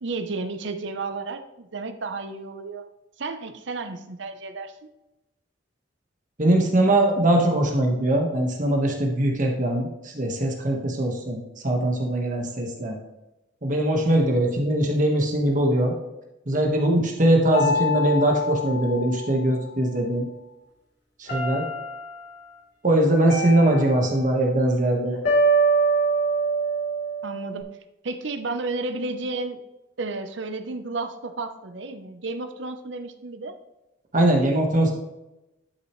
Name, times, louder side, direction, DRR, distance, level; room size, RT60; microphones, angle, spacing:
voice 1, 0.0-2.9 3.2-4.9 27.2-27.7 28.0-29.6 30.0-33.6, right 3 dB, 65° right, 9 dB, 0.8 m, -32 dB
voice 2, 6.4-11.4 11.6-13.0 13.6-15.9 16.5-20.2 21.2-21.6 22.8-25.2 34.1-34.9, right 1 dB, 40° right, 1 dB, 1.4 m, -21 dB
sound 1, 17.5-19.9 21.3-22.3 23.3-24.6 25.2-27.6, right 2 dB, 55° left, 3.4 m, -25 dB
11.5 x 6.6 x 3.2 m, 0.96 s
head